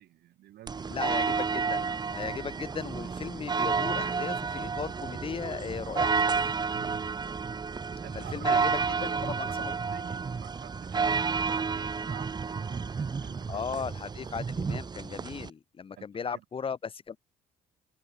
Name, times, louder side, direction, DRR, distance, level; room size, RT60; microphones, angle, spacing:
voice 1, 0.0-0.9 6.7-7.1 8.0-13.8 16.0-16.1 16.3-16.4, right 14 dB, 70° right, 4.4 m, -49 dB
sound 1, 0.7-15.5, right 5 dB, 25° right, 1.0 m, -31 dB
voice 2, 0.9-6.2 8.1-8.7 9.0-9.7 13.5-17.2, left 6 dB, 30° left, 1.3 m, -37 dB
open air
cardioid pair, 110°, 17 cm